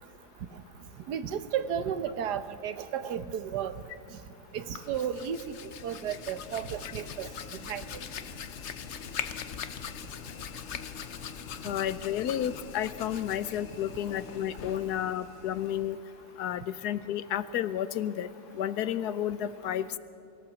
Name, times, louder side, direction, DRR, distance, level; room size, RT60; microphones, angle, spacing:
voice 1, 1.1-3.7 4.5-5.4 5.8-7.3 7.7-7.8, right 8 dB, 85° right, 12 dB, 1.5 m, -33 dB
Hands, 4.6-16.0, left 7 dB, 55° left, 0.9 m, -42 dB
voice 2, 11.6-16.0 16.4-18.3 18.5-20.0, left 10 dB, 75° left, 15 dB, 1.2 m, -31 dB
24.0 x 16.5 x 7.2 m, 2.5 s
omnidirectional pair, 1.7 m